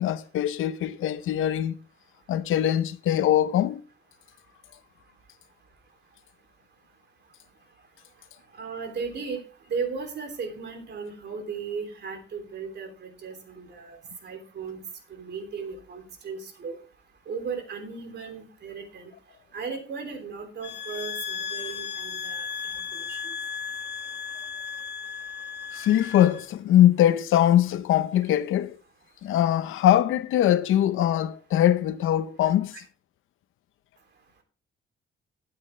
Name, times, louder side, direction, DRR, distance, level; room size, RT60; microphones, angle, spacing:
voice 1, 0.0-1.8 2.3-3.8 25.7-28.8 29.2-32.7, left 11 dB, 90° left, 0.8 m, -22 dB
voice 2, 8.6-9.4 9.7-14.8 15.1-16.8 17.3-19.1 19.5-22.5 22.7-22.8 23.1-23.2, right 5 dB, 60° right, 3.2 m, -36 dB
sound 1, 20.6-26.5, left 6 dB, 60° left, 1.6 m, -35 dB
13.0 x 8.7 x 3.3 m
cardioid pair, 110°, 20 cm